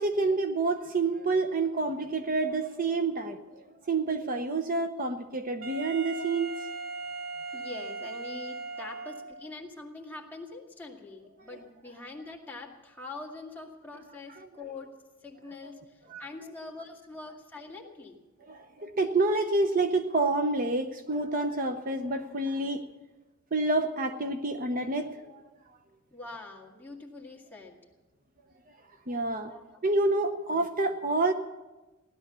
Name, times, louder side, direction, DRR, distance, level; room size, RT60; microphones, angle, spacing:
voice 1, 0.0-6.5 16.1-16.2 18.5-22.8 23.5-25.4 29.1-29.5 29.8-31.3, right 3 dB, 40° right, 7 dB, 0.8 m, -28 dB
Wind instrument woodwind instrument, 5.6-9.5, right 3 dB, 75° right, 1.1 m, -38 dB
voice 2, 7.5-14.9 15.2-18.2 26.1-27.8 29.4-29.8, left 3 dB, 10° left, -1 dB, 2.0 m, -44 dB
16.5 x 12.0 x 6.8 m, 1.1 s
head